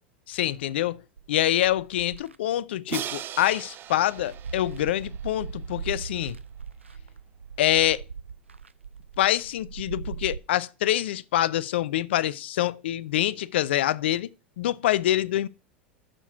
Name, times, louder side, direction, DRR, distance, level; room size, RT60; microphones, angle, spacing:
voice 1, 0.3-1.0 1.3-6.4 7.6-8.0 9.2-14.3 14.6-15.5, left 13 dB, 65° left, 0.6 m, -25 dB
sound 1, 1.2-2.4 3.1-3.2 3.5-10.4, right 6 dB, 85° right, 0.5 m, -39 dB
Crash cymbal, 2.9-5.8, right 10 dB, 35° right, 0.6 m, -38 dB
6.9 x 6.8 x 5.7 m
figure-of-eight pair, 85°, 6 cm